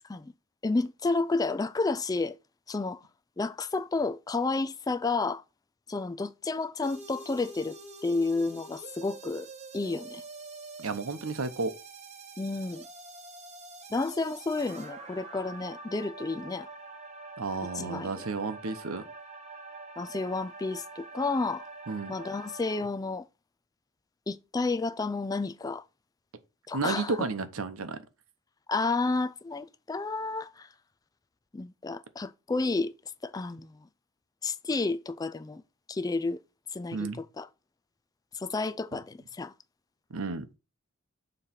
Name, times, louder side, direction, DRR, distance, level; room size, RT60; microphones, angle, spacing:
voice 1, 0.6-2.3 2.7-3.0 3.4-5.4 5.9-7.8 8.0-9.5 9.7-10.2 12.4-12.8 13.9-16.7 17.7-18.1 20.0-21.6 22.1-23.3 24.3-25.8 26.7-27.2 28.7-30.7 31.5-32.9 33.2-33.9 34.4-35.6 35.9-36.4 36.7-37.5 38.3-39.5, left 3 dB, 15° left, 0.3 m, -31 dB
sound 1, 6.8-22.8, right 3 dB, 30° right, 1.0 m, -46 dB
voice 2, 10.8-11.7 17.4-19.0 21.9-22.1 26.7-28.0 36.9-37.2 38.9-39.0 40.1-40.4, right 4 dB, 90° right, 0.9 m, -32 dB
6.9 x 3.2 x 5.7 m
head